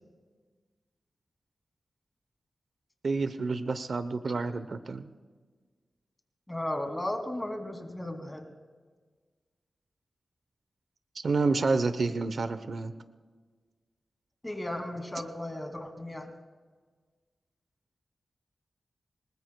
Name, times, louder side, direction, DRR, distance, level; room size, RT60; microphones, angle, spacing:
voice 1, 3.0-5.1 11.1-12.9, right 3 dB, 65° right, 11 dB, 0.8 m, -29 dB
voice 2, 6.5-8.5 14.4-16.3, left 1 dB, 15° left, 3 dB, 2.6 m, -35 dB
27.5 x 20.0 x 2.3 m, 1.5 s
wide cardioid pair, 75°, 0 cm